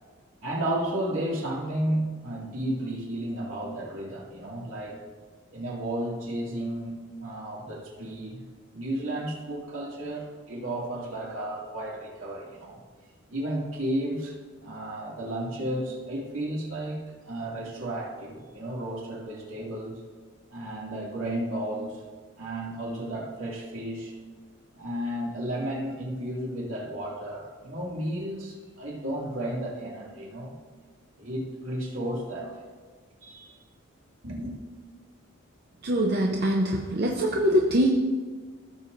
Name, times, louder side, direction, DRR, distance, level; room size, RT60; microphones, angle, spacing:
voice 1, 0.4-5.0 5.5-8.4 8.7-12.8 13.3-14.4 14.6-20.0 20.5-22.0 22.4-24.1 24.7-30.5 31.2-32.6 33.2-33.6 34.2-34.6, right 1 dB, 85° right, -4 dB, 2.3 m, -33 dB
voice 2, 35.8-37.9, equal, 50° right, 0 dB, 0.7 m, -23 dB
15.5 x 7.1 x 2.6 m, 1.5 s
head